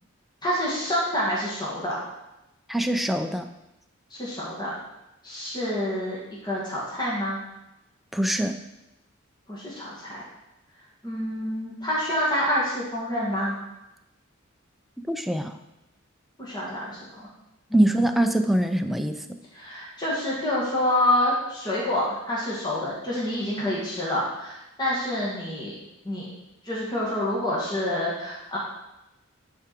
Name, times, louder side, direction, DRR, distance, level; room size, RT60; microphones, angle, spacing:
voice 1, 0.4-2.0 4.1-4.7 5.2-6.2 6.4-7.4 9.5-10.2 11.0-13.6 16.4-17.3 17.7-18.1 19.5-25.7 26.0-26.3 26.6-28.6, left 1 dB, 20° left, -6 dB, 2.2 m, -27 dB
voice 2, 2.7-3.5 8.1-8.6 15.1-15.6 17.7-19.4, right 1 dB, ahead, 6 dB, 0.5 m, -23 dB
10.5 x 4.9 x 4.5 m, 0.93 s
head